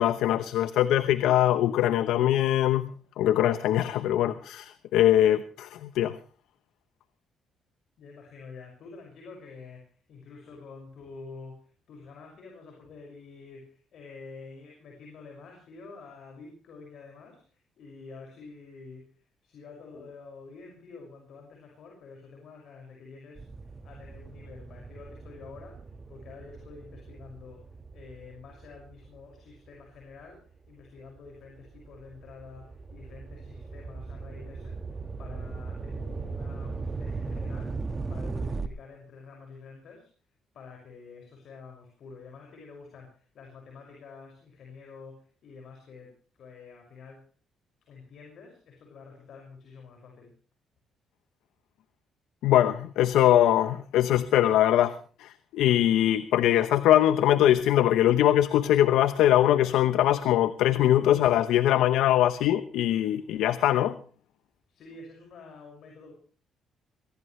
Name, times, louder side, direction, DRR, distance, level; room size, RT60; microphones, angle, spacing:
voice 1, 0.0-2.8 3.2-6.2 52.4-54.9 55.2-64.0, left 12 dB, 90° left, 13 dB, 0.9 m, -22 dB
voice 2, 8.0-23.5 23.8-34.8 35.2-37.8 38.1-40.1 40.5-47.3 47.8-50.3 64.7-66.1, left 4 dB, 70° left, 1 dB, 6.1 m, -48 dB
sound 1, 23.4-30.1 30.7-38.7, right 4 dB, 30° right, 1.6 m, -38 dB
23.0 x 17.0 x 3.3 m, 0.41 s
cardioid pair, 90°, 0 cm